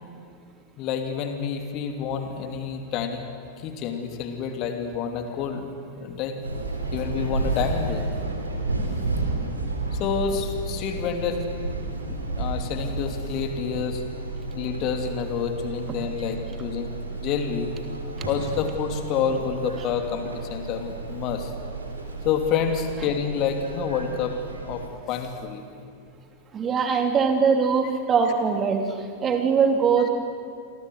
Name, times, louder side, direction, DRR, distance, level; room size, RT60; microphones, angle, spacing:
voice 1, 0.8-3.2 3.6-5.7 5.9-6.4 6.9-8.1 9.9-11.4 12.1-14.0 14.5-17.7 18.3-21.5 22.2-24.3 24.6-25.6 30.0-30.1, left 7 dB, 40° left, 5 dB, 3.1 m, -28 dB
sound 1, 6.4-24.9, right 3 dB, 80° right, 3.5 m, -32 dB
voice 2, 26.5-28.9 29.2-30.1, right 6 dB, 25° right, 5 dB, 3.0 m, -21 dB
29.0 x 24.5 x 6.8 m, 2.3 s
figure-of-eight pair, 90°, 0 cm